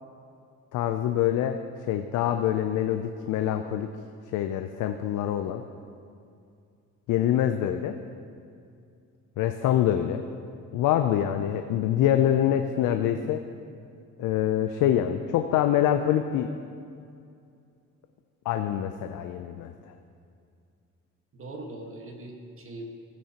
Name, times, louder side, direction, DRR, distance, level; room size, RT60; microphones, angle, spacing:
voice 1, 0.7-1.6 1.9-3.9 4.3-5.6 7.1-8.0 9.4-10.2 10.7-13.4 14.2-16.5 18.5-19.7, left 11 dB, 85° left, 8 dB, 0.5 m, -25 dB
voice 2, 7.3-7.7 21.3-22.8, right 2 dB, 45° right, 2 dB, 1.5 m, -41 dB
16.0 x 8.4 x 2.9 m, 2.4 s
cardioid pair, 90°, 30 cm